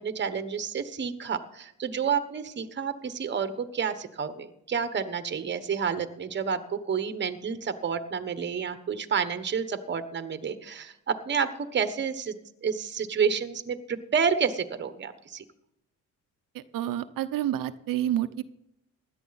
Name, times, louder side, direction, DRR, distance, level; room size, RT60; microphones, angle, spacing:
voice 1, 0.0-12.3 12.6-15.4, right 6 dB, 30° right, 11 dB, 1.2 m, -29 dB
voice 2, 16.5-18.4, right 12 dB, 75° right, 11 dB, 0.8 m, -29 dB
16.5 x 11.5 x 4.1 m, 0.80 s
cardioid pair, 105°, 34 cm